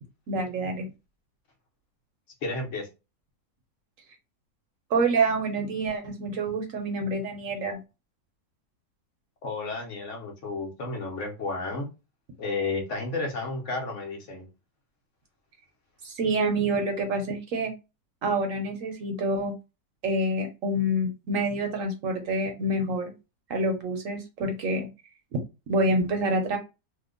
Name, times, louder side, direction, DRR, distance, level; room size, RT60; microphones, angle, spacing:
voice 1, 0.3-0.9 4.9-7.8 16.0-17.7 18.2-19.5 20.0-23.1 23.5-24.9 25.7-26.6, right 2 dB, 65° right, 4 dB, 0.9 m, -27 dB
voice 2, 2.4-2.9 9.4-11.9 12.4-14.5, left 3 dB, 55° left, 1 dB, 1.1 m, -32 dB
2.8 x 2.1 x 3.7 m, 0.28 s
omnidirectional pair, 1.7 m